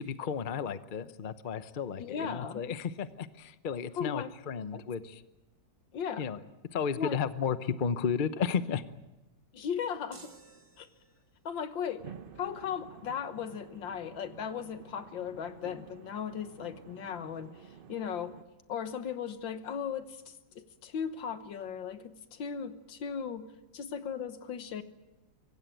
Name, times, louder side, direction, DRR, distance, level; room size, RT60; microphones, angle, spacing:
voice 1, 0.0-5.2 6.2-6.4 6.7-8.8, left 6 dB, 40° left, 12 dB, 0.7 m, -33 dB
voice 2, 2.0-2.6 4.0-4.3 4.7-4.8 5.9-6.2 7.0-7.2 9.5-10.2 10.8-10.9 11.5-12.0 12.4-17.6 17.9-18.4 18.7-24.8, left 7 dB, 90° left, 11 dB, 1.9 m, -37 dB
sound 1, 10.1-11.4, right 4 dB, 65° right, 2.8 m, -55 dB
sound 2, 12.0-18.4, right 7 dB, 50° right, 0.7 m, -51 dB
24.5 x 16.5 x 9.1 m, 1.1 s
omnidirectional pair, 2.0 m